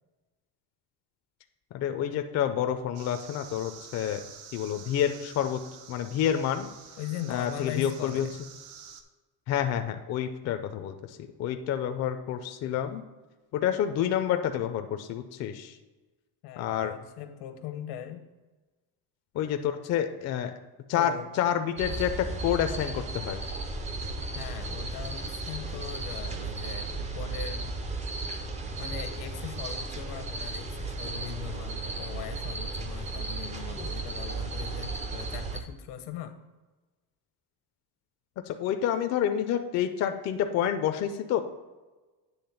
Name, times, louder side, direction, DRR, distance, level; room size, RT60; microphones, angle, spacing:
voice 1, 1.7-4.2 4.5-5.6 5.9-6.7 7.3-8.3 9.5-13.0 13.5-15.8 16.6-16.9 19.3-20.5 20.9-21.1 21.4-23.4 38.4-41.4, left 9 dB, 40° left, 7 dB, 0.4 m, -28 dB
sound 1, 2.9-9.0, right 7 dB, 70° right, 0.8 m, -48 dB
voice 2, 7.0-8.4 10.4-10.6 16.4-18.3 20.9-21.4 21.9-22.0 24.2-27.8 28.8-36.4, left 11 dB, 80° left, 9 dB, 0.8 m, -40 dB
sound 2, 21.8-35.6, right 3 dB, 20° right, 0.4 m, -35 dB
8.7 x 3.3 x 5.6 m, 1.2 s
cardioid pair, 170°, 40 cm